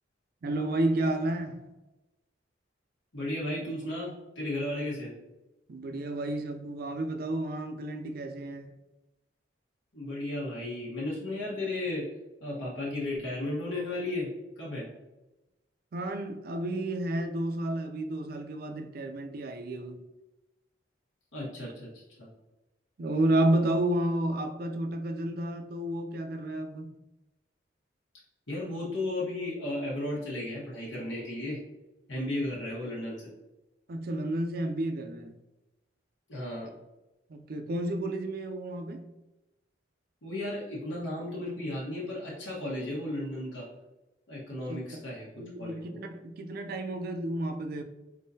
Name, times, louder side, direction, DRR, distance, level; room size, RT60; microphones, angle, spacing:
voice 1, 0.4-1.6 5.7-8.8 15.9-20.1 23.0-26.9 33.9-35.4 37.3-39.1 44.7-45.0 45.4-47.8, right 1 dB, 50° right, 0.4 m, -31 dB
voice 2, 3.1-5.1 9.9-12.0 12.4-14.3 14.6-14.9 21.3-22.3 28.5-31.6 32.1-33.3 36.3-36.7 40.2-43.7 44.3-46.0, left 1 dB, 85° left, 1.3 m, -34 dB
4.0 x 3.6 x 2.7 m
head